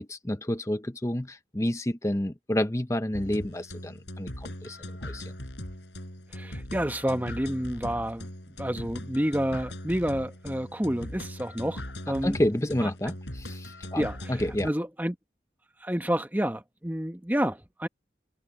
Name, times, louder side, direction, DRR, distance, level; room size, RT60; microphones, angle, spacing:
voice 1, 0.0-5.2 12.2-14.0 14.3-14.7, left 1 dB, 15° left, 0.8 m, -29 dB
sound 1, 3.1-14.7, left 1 dB, 90° left, 7.3 m, -40 dB
voice 2, 6.3-11.8 12.1-12.4 12.8-12.9 14.0-14.4 14.6-15.2 15.8-17.9, equal, 10° right, 1.1 m, -29 dB
head